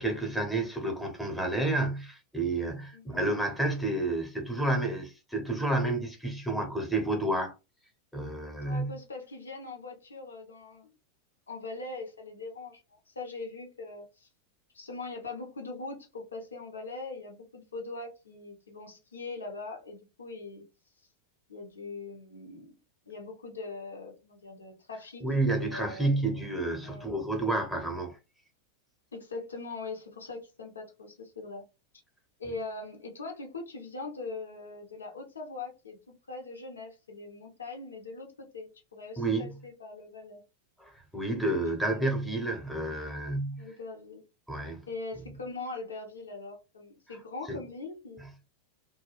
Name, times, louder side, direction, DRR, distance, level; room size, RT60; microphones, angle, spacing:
voice 1, 0.0-7.5 8.1-8.9 25.2-28.2 39.2-39.6 40.8-43.7 44.5-44.8 47.5-47.6, right 2 dB, ahead, 0.9 m, -30 dB
voice 2, 2.9-3.2 8.6-10.9 11.5-14.3 14.7-20.7 21.5-22.8 23.1-25.2 25.5-26.2 26.8-27.1 29.1-31.6 32.4-40.4 41.8-42.0 43.6-44.3 44.9-48.2, left 3 dB, 70° left, 0.9 m, -41 dB
2.3 x 2.2 x 3.3 m
figure-of-eight pair, 90°, 0 cm